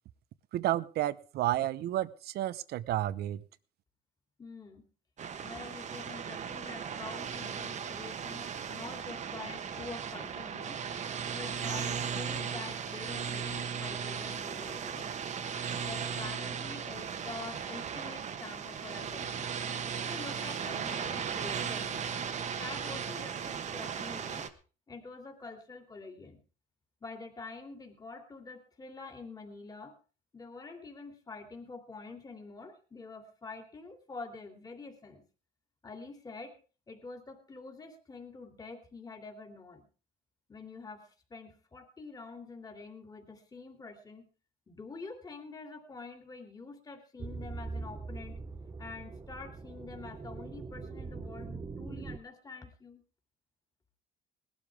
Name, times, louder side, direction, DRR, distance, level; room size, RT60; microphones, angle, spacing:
voice 1, 0.5-3.4, right 13 dB, 70° right, 16 dB, 0.8 m, -31 dB
voice 2, 4.4-4.9 5.4-10.8 11.3-15.2 15.8-19.5 20.1-22.0 22.6-24.5 24.9-26.4 27.0-30.0 30.3-35.2 35.8-36.6 36.9-39.9 40.5-44.3 44.7-48.4 48.8-53.0, left 4 dB, 20° left, 4 dB, 2.9 m, -46 dB
sound 1, 5.2-24.5, right 7 dB, 45° right, 1.3 m, -37 dB
sound 2, 47.2-52.2, right 4 dB, 25° right, 0.9 m, -42 dB
19.5 x 12.5 x 3.5 m, 0.35 s
cardioid pair, 110°, 17 cm